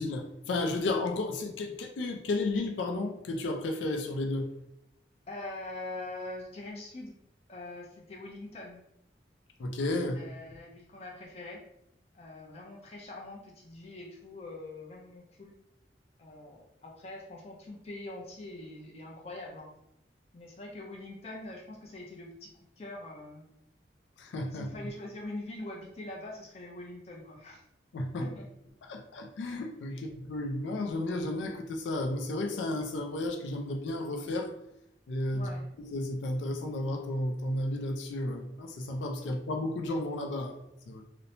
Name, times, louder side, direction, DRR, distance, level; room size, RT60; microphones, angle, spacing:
voice 1, 0.0-4.5 9.6-10.2 24.2-24.8 27.9-28.3 28.9-34.5 35.1-35.5 35.9-41.0, left 2 dB, 90° left, 4 dB, 0.4 m, -33 dB
voice 2, 5.3-7.2 7.5-8.8 10.1-11.6 12.1-15.5 16.2-19.7 20.3-22.5 22.8-23.5 24.5-27.6 28.2-28.5 29.9-30.1 35.3-35.7, left 2 dB, 35° left, -1 dB, 0.5 m, -43 dB
2.8 x 2.0 x 2.7 m, 0.79 s
head